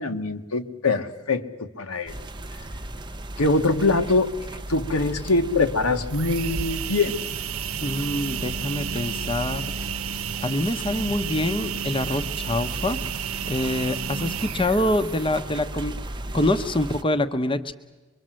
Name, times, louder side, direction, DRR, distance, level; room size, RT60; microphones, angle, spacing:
voice 1, 0.0-2.1 3.4-4.3 4.7-7.2, left 3 dB, 85° left, 6 dB, 1.7 m, -23 dB
sound 1, 2.1-17.0, right 1 dB, 20° right, 0.9 m, -36 dB
sound 2, 6.1-15.5, right 8 dB, 70° right, 0.9 m, -32 dB
voice 2, 7.8-9.7 10.4-13.0 13.4-16.0 16.3-17.7, left 1 dB, 25° left, 8 dB, 1.0 m, -25 dB
24.5 x 23.5 x 7.7 m, 1.2 s
head